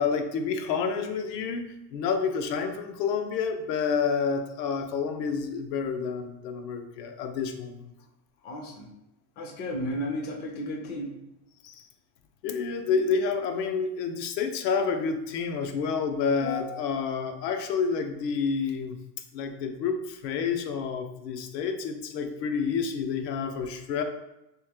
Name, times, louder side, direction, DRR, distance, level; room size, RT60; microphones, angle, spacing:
voice 1, 0.0-1.6 1.9-7.9 9.7-10.0 11.6-11.9 12.4-19.0 19.3-24.0, left 5 dB, 80° left, 6 dB, 0.7 m, -29 dB
voice 2, 8.4-8.9 9.4-11.1, equal, 25° left, 2 dB, 0.4 m, -33 dB
3.1 x 2.8 x 3.4 m, 0.90 s
supercardioid pair, 120°, 50 cm